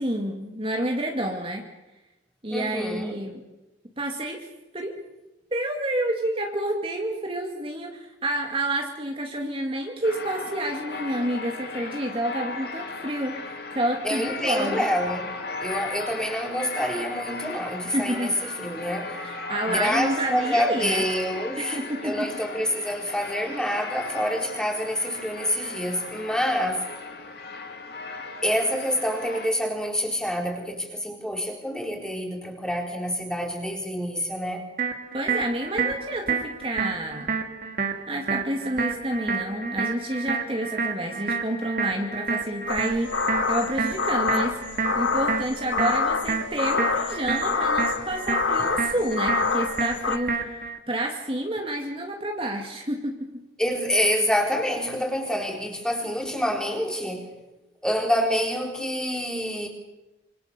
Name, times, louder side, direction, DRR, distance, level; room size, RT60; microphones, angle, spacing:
voice 1, 0.0-1.6 2.4-3.4 4.0-4.5 4.7-4.9 5.5-13.4 13.7-14.8 17.9-18.4 19.2-21.0 21.6-22.3 35.1-37.4 38.1-44.6 44.9-50.6 50.9-53.4, right 1 dB, 30° right, 2 dB, 2.2 m, -29 dB
voice 2, 2.5-3.2 14.0-15.4 15.6-19.2 19.7-21.8 22.0-26.8 28.4-34.6 53.6-57.3 57.8-59.7, equal, 5° left, 2 dB, 3.9 m, -27 dB
sound 1, 10.0-29.5, left 3 dB, 55° left, 3.0 m, -36 dB
sound 2, 34.8-50.8, right 4 dB, 50° right, 2.4 m, -30 dB
sound 3, 42.7-50.2, left 4 dB, 85° left, 1.4 m, -27 dB
26.5 x 25.5 x 6.9 m, 1.0 s
head